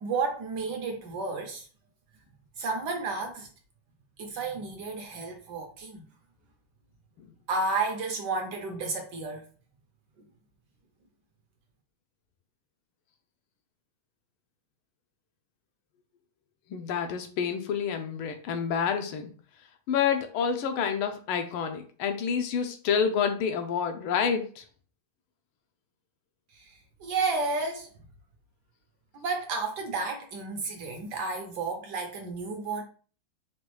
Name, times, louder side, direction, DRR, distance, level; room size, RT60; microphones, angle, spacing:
voice 1, 0.0-1.7 2.6-3.5 4.2-6.1 7.5-9.5 26.5-27.9 29.1-32.8, right 3 dB, 70° right, 1.1 m, -32 dB
voice 2, 16.7-19.3 19.9-24.6, left 7 dB, 90° left, 1.5 m, -28 dB
5.1 x 2.3 x 3.1 m
omnidirectional pair, 2.3 m